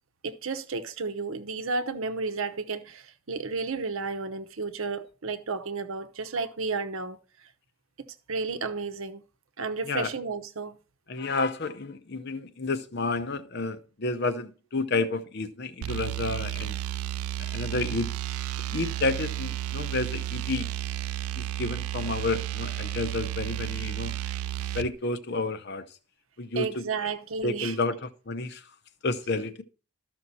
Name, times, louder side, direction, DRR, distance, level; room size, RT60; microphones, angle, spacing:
voice 1, 0.2-7.5 8.0-9.2 9.6-10.8 17.9-18.0 26.6-27.8, right 4 dB, 70° right, 0.8 m, -32 dB
voice 2, 11.1-16.8 17.5-18.1 18.7-20.7 21.4-24.1 24.7-25.9 26.4-26.8 27.4-28.7 29.0-29.6, left 3 dB, 50° left, 0.7 m, -30 dB
sound 1, 15.8-24.9, right 13 dB, 85° right, 0.4 m, -32 dB
13.0 x 6.1 x 4.1 m
head